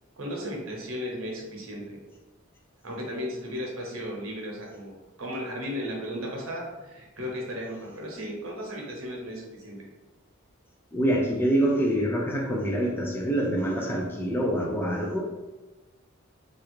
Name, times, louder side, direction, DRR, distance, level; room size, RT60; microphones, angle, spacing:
voice 1, 0.2-2.0 2.8-4.9 5.2-9.9, equal, 80° right, -1 dB, 0.9 m, -35 dB
voice 2, 10.9-15.2, right 1 dB, 10° left, -1 dB, 0.4 m, -25 dB
3.2 x 2.4 x 3.1 m, 1.2 s
head